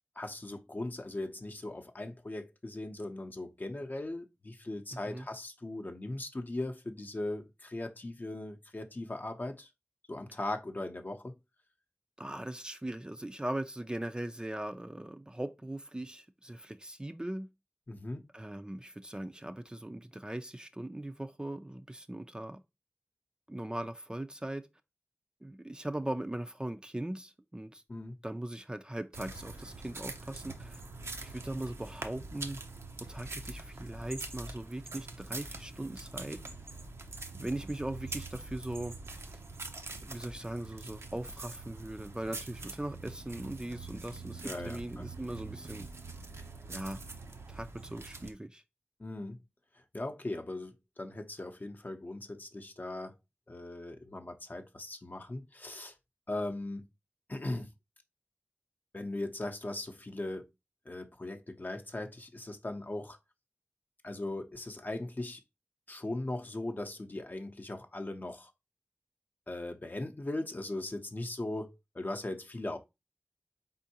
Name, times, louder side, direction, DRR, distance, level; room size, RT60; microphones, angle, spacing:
voice 1, 0.2-9.7 10.1-11.4 17.9-18.2 27.9-28.2 44.4-45.1 49.0-49.4 49.7-53.1 53.5-55.9 56.3-56.9 57.3-57.7 58.9-60.5 60.9-63.2 64.0-65.4 65.9-68.5 69.5-72.8, left 2 dB, 45° left, 0.6 m, -39 dB
voice 2, 4.9-5.3 12.2-17.5 18.3-22.6 23.5-24.7 25.4-27.8 28.2-30.8 31.2-32.6 33.0-36.4 37.3-38.9 40.0-45.9 46.7-47.0 47.5-48.6, right 1 dB, 20° right, 0.4 m, -39 dB
sound 1, 29.1-48.3, right 3 dB, 80° right, 0.6 m, -44 dB
4.4 x 3.7 x 2.8 m
wide cardioid pair, 60°, 4 cm